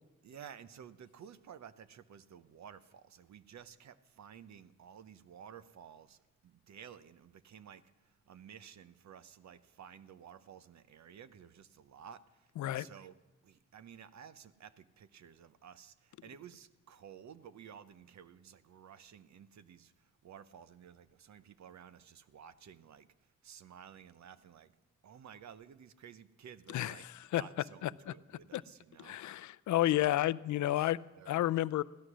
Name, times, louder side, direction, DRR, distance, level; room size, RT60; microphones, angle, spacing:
voice 1, 0.2-13.2 13.4-24.7 25.0-27.1 27.3-29.2 29.8-30.1 30.5-31.6, right 8 dB, 65° right, 14 dB, 0.9 m, -54 dB
voice 2, 26.7-27.4 27.8-28.1 28.5-28.6 29.0-31.0 31.3-31.8, left 14 dB, 75° left, 18 dB, 0.5 m, -31 dB
15.5 x 12.5 x 6.2 m, 1.1 s
cardioid pair, 60°, 29 cm